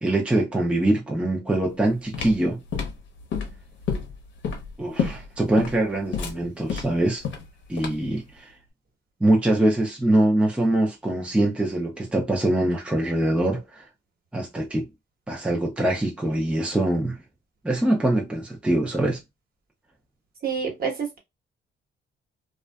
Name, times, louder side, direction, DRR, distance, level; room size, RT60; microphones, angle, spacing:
voice 1, 0.0-2.6 4.8-7.2 7.7-8.5 9.2-13.8 14.3-14.9 15.3-17.2 17.6-19.2, right 1 dB, 5° right, 0.6 m, -23 dB
sound 1, 1.7-8.2, left 6 dB, 70° left, 0.8 m, -30 dB
voice 2, 20.4-21.2, right 6 dB, 50° right, 1.1 m, -28 dB
2.4 x 2.3 x 2.2 m
cardioid pair, 90°, 20 cm